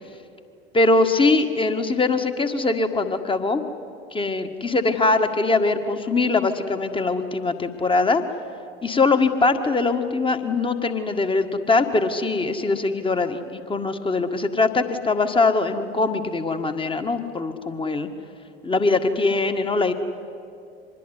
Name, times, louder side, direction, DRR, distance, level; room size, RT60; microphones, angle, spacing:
voice 1, 0.7-3.6 4.1-8.2 8.8-18.1 18.6-19.9, left 3 dB, 15° left, 8 dB, 1.7 m, -22 dB
25.0 x 21.0 x 9.7 m, 2.6 s
figure-of-eight pair, 70°, 32 cm